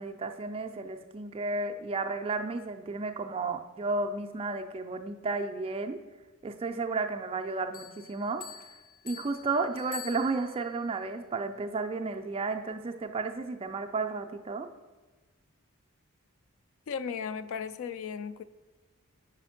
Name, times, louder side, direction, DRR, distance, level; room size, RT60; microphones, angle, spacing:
voice 1, 0.0-6.0 6.4-8.6 9.0-14.7, right 3 dB, 25° right, 6 dB, 0.3 m, -33 dB
Bell, 7.7-10.8, left 8 dB, 40° left, 0.7 m, -46 dB
voice 2, 16.9-18.4, left 6 dB, 60° left, 14 dB, 0.3 m, -36 dB
5.1 x 4.9 x 5.7 m, 1.3 s
head